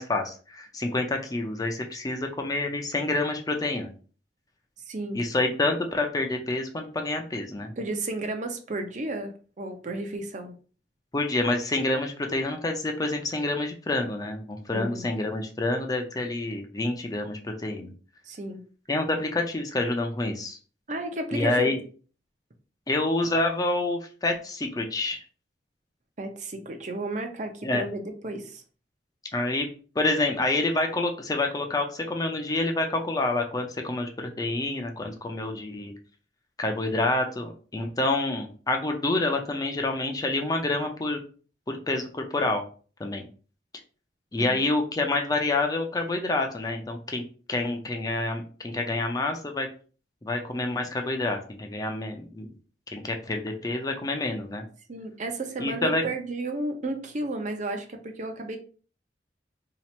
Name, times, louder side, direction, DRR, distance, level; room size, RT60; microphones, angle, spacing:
voice 1, 0.0-3.9 5.1-7.7 11.1-17.9 18.9-20.6 21.3-21.8 22.9-25.2 27.6-27.9 29.3-29.7 30.0-35.9 36.6-41.2 41.7-42.6 43.0-43.3 44.3-47.2 47.5-49.7 50.2-52.5 52.9-54.6 55.6-56.0, left 2 dB, 20° left, 3 dB, 0.5 m, -28 dB
voice 2, 4.9-5.2 7.8-10.5 14.7-15.1 18.3-18.6 20.9-21.7 26.2-28.6 44.4-44.6 54.9-58.6, right 2 dB, 45° right, 5 dB, 0.6 m, -33 dB
2.9 x 2.4 x 4.2 m, 0.39 s
head